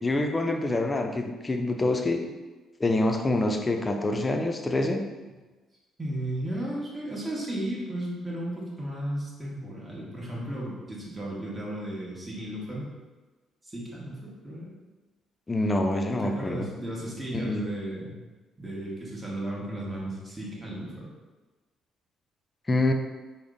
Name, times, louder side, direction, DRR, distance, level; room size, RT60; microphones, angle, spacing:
voice 1, 0.0-2.3 2.8-5.1 15.5-16.7 17.3-17.6 22.7-22.9, left 2 dB, 25° left, 4 dB, 0.4 m, -26 dB
voice 2, 6.0-12.9 13.6-14.7 16.1-18.2 18.6-21.1, right 1 dB, 20° right, -5 dB, 1.3 m, -34 dB
3.5 x 2.1 x 3.6 m, 1.2 s
supercardioid pair, 60°, 0 cm